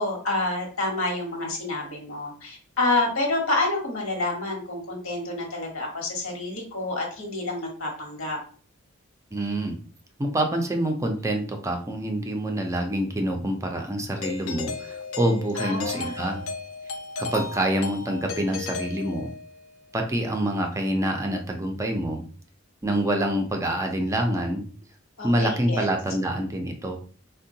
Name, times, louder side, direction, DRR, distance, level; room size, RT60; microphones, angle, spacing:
voice 1, 0.0-8.4 15.5-16.2 25.2-25.9, left 2 dB, 85° left, 1 dB, 1.0 m, -28 dB
voice 2, 9.3-9.8 10.2-16.4 17.2-19.3 19.9-22.3 22.8-24.6 25.2-27.0, right 1 dB, 15° right, 3 dB, 0.4 m, -26 dB
Doorbell, 14.2-19.6, left 4 dB, 70° left, 0.4 m, -35 dB
3.6 x 2.2 x 2.6 m, 0.43 s
head